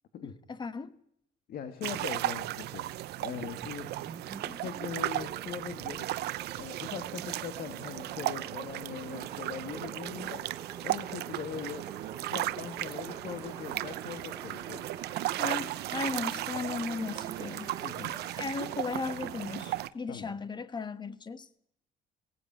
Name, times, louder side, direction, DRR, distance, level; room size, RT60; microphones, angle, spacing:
voice 1, 0.2-1.0 15.4-17.7 18.4-21.5, left 4 dB, 25° left, 1.4 m, -36 dB
voice 2, 1.5-3.9 4.4-6.1 6.6-10.5 10.8-11.9 12.2-14.8 17.8-18.2 20.1-20.3, left 8 dB, 60° left, 2.0 m, -41 dB
sound 1, 1.8-19.9, right 15 dB, 75° right, 0.8 m, -36 dB
sound 2, 3.6-18.4, right 4 dB, 20° right, 1.2 m, -49 dB
21.5 x 17.0 x 9.0 m
cardioid pair, 110°, 17 cm